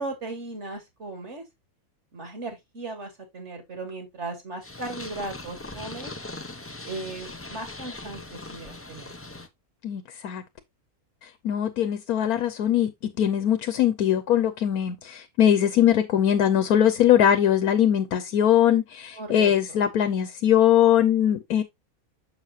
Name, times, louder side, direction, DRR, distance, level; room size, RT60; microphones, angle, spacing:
voice 1, 0.0-1.4 2.1-6.1 6.8-9.1 19.1-19.5, right 2 dB, 50° right, 2.7 m, -37 dB
Purr, 4.6-9.5, left 2 dB, 15° left, 0.5 m, -40 dB
voice 2, 9.8-10.4 11.2-12.9 13.2-21.6, left 10 dB, 90° left, 1.3 m, -21 dB
6.8 x 6.6 x 2.8 m
omnidirectional pair, 1.5 m